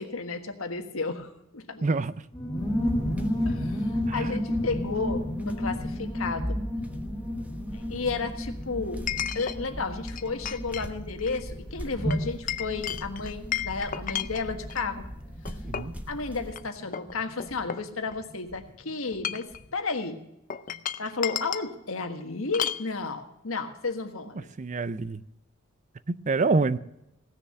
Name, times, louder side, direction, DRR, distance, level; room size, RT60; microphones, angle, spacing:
voice 1, 0.0-1.9 3.4-3.8 4.1-6.6 7.7-9.0 9.3-15.1 16.1-19.5 19.7-20.2 21.0-24.5, left 4 dB, 80° left, 1.5 m, -32 dB
voice 2, 1.8-2.1 4.1-4.3 15.6-15.9 24.6-25.2 26.1-26.8, right 3 dB, 35° right, 0.5 m, -26 dB
sound 1, 2.3-18.6 18.9-19.0 19.2-19.6, left 1 dB, 20° left, 1.9 m, -34 dB
sound 2, 2.6-16.5, equal, 5° right, 1.1 m, -38 dB
Chink clink, 5.6-5.7 9.1-9.6 10.1-10.9 11.2-11.4 12.1-14.9 15.5-16.0 16.5-16.6 16.9-18.4 19.1-19.6 20.5-21.7 22.5-22.9, left 10 dB, 40° left, 0.5 m, -33 dB
17.0 x 6.8 x 7.6 m
head